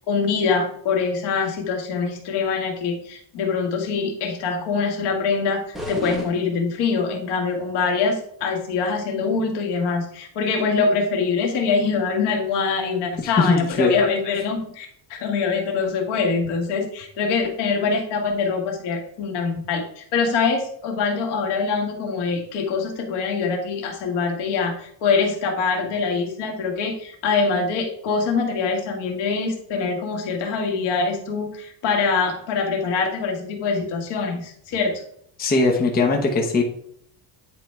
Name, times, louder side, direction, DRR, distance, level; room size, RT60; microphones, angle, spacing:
voice 1, 0.1-35.0, left 5 dB, 70° left, 2 dB, 2.0 m, -24 dB
sound 1, 5.7-7.2, equal, ahead, 1.4 m, -34 dB
voice 2, 13.2-13.9 35.4-36.6, left 3 dB, 20° left, 0 dB, 1.1 m, -20 dB
9.6 x 4.1 x 4.5 m, 0.65 s
cardioid pair, 170°, 42 cm